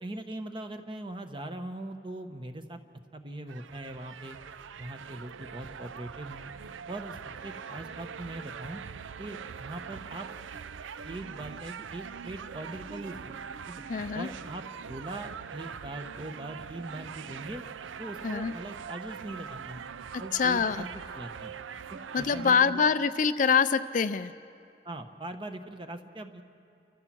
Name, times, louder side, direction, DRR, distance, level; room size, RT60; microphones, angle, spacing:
voice 1, 0.0-2.8 3.1-4.4 4.8-6.5 6.9-7.2 7.4-8.8 9.2-10.3 11.0-13.4 13.7-13.8 14.1-14.6 14.9-17.6 18.0-19.8 20.2-20.9 21.1-21.5 21.9-22.8 24.8-26.4, right 1 dB, 25° right, 7 dB, 1.0 m, -41 dB
sound 1, 3.5-22.6, right 6 dB, 85° right, 0.5 m, -42 dB
voice 2, 13.9-14.3 18.2-18.5 20.1-20.9 22.1-24.3, left 6 dB, 40° left, 12 dB, 0.4 m, -25 dB
29.5 x 14.5 x 6.1 m, 2.6 s
head